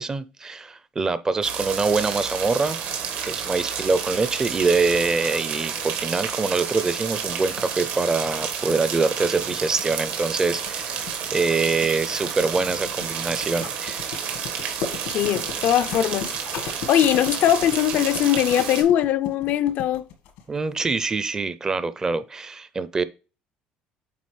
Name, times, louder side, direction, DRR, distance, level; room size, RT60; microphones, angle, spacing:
voice 1, 0.0-2.8 3.2-11.1 11.3-14.1 20.5-23.0, right 4 dB, 20° right, 0.5 m, -24 dB
sound 1, 1.4-18.8, right 7 dB, 75° right, 1.6 m, -30 dB
sound 2, 7.0-20.7, left 7 dB, 90° left, 1.5 m, -38 dB
voice 2, 15.1-20.1, left 11 dB, 60° left, 0.4 m, -21 dB
8.5 x 3.8 x 3.2 m
cardioid pair, 130°, 3 cm